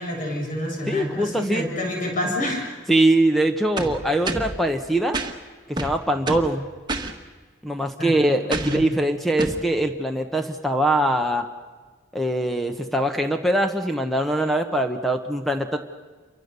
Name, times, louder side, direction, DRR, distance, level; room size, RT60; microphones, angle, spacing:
voice 1, 0.0-2.7 8.0-8.9, left 1 dB, 45° left, 0 dB, 6.9 m, -28 dB
voice 2, 0.9-1.7 2.9-5.2 5.7-6.7 7.6-11.5 12.1-15.8, right 1 dB, ahead, 5 dB, 1.1 m, -22 dB
sound 1, 3.8-4.6 5.1-5.3 5.8-6.5 6.9-7.1 8.5-8.8 9.4-9.6, right 2 dB, 25° right, 1.6 m, -28 dB
29.0 x 24.5 x 6.8 m, 1.4 s
head